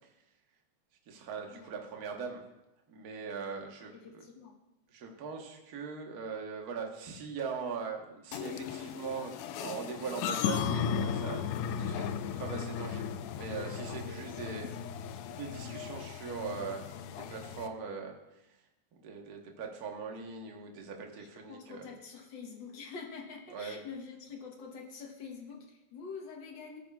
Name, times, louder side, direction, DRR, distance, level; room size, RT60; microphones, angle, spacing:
voice 1, 1.1-2.4 2.9-4.2 4.9-11.5 11.8-14.7 15.3-16.8 17.1-18.2 18.9-21.9 23.5-23.8, right 5 dB, 55° right, 1 dB, 1.0 m, -41 dB
voice 2, 3.9-4.6 14.0-14.7 21.2-26.8, left 5 dB, 60° left, 2 dB, 1.3 m, -46 dB
sound 1, 8.3-17.7, left 8 dB, 80° left, 1.7 m, -36 dB
17.5 x 8.9 x 2.4 m, 0.93 s
omnidirectional pair, 3.4 m